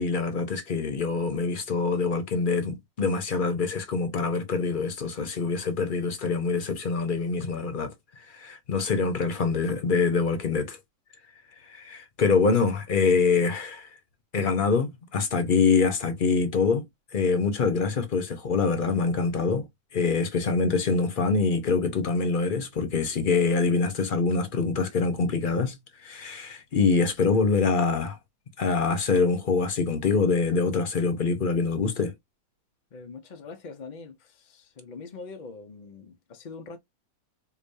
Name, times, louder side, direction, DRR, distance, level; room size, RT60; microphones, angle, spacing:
voice 1, 0.0-7.9 8.3-10.8 11.7-13.9 14.3-16.8 17.1-19.7 19.9-25.8 26.0-28.2 28.6-32.1, left 4 dB, 40° left, 0.8 m, -25 dB
voice 2, 32.9-36.8, left 4 dB, 65° left, 0.4 m, -43 dB
5.0 x 2.3 x 2.5 m
omnidirectional pair, 1.6 m